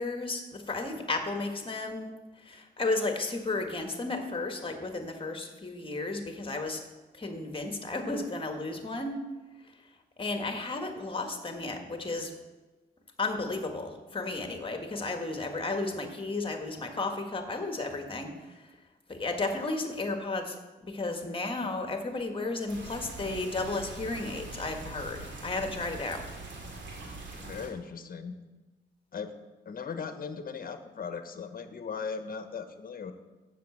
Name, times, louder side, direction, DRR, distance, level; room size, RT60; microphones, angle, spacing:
voice 1, 0.0-2.1 2.4-6.8 7.1-9.2 10.2-12.3 13.2-18.7 19.1-20.6 20.8-26.3, left 3 dB, 30° left, 5 dB, 1.5 m, -33 dB
sound 1, 22.7-27.7, right 3 dB, 80° right, 2.2 m, -43 dB
voice 2, 27.4-28.4 29.1-29.3 29.6-33.1, left 5 dB, 50° left, 9 dB, 1.0 m, -38 dB
7.4 x 6.7 x 7.3 m, 1.2 s
cardioid pair, 75°, 19 cm